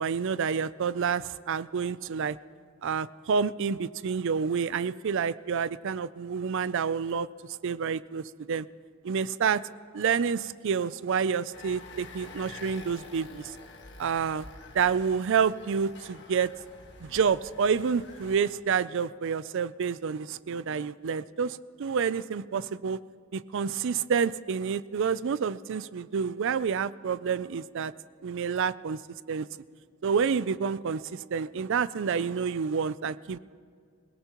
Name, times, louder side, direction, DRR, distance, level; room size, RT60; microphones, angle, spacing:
voice 1, 0.0-2.4 2.8-7.3 7.6-8.7 9.0-9.6 9.9-13.5 14.0-14.5 14.7-16.5 17.0-23.0 23.3-27.9 28.2-29.0 29.3-29.5 30.0-33.4, right 6 dB, 60° right, 17 dB, 0.4 m, -28 dB
sound 1, 11.5-18.5, left 3 dB, 55° left, 1.4 m, -48 dB
27.0 x 17.5 x 3.0 m, 2.1 s
head